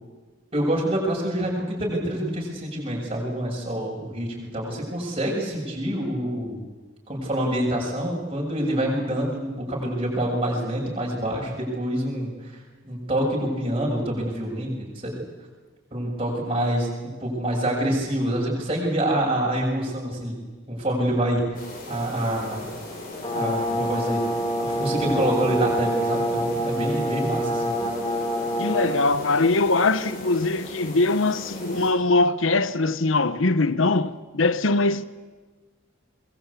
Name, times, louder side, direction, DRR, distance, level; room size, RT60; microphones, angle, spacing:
voice 1, 0.5-6.6 7.1-12.5 12.8-14.9 15.9-20.4 20.7-21.4 21.9-22.6 23.3-24.2 24.6-27.7, right 1 dB, 30° right, 7.0 m, -26 dB
sound 1, 21.5-31.9, left 1 dB, 45° left, 7.3 m, -38 dB
Brass instrument, 23.2-29.0, equal, 25° left, 4.5 m, -26 dB
voice 2, 28.6-35.0, left 3 dB, 75° left, 1.0 m, -22 dB
23.5 x 21.5 x 8.6 m
head